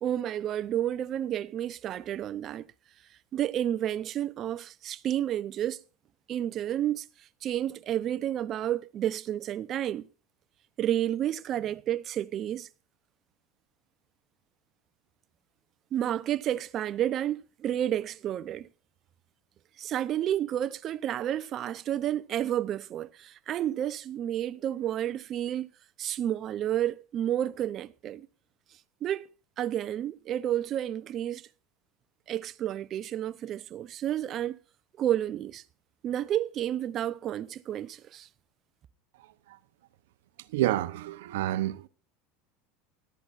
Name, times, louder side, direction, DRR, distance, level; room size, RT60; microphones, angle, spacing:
voice 1, 0.0-2.7 3.3-5.8 6.3-7.0 7.4-10.1 10.8-12.7 15.9-18.7 19.8-25.7 26.0-28.3 29.0-29.3 29.6-31.4 32.3-34.6 35.0-35.6 36.0-38.3, right 11 dB, 40° right, 0.7 m, -30 dB
voice 2, 40.5-41.9, right 14 dB, 80° right, 0.8 m, -29 dB
17.5 x 12.0 x 2.6 m
supercardioid pair, 115°, 0 cm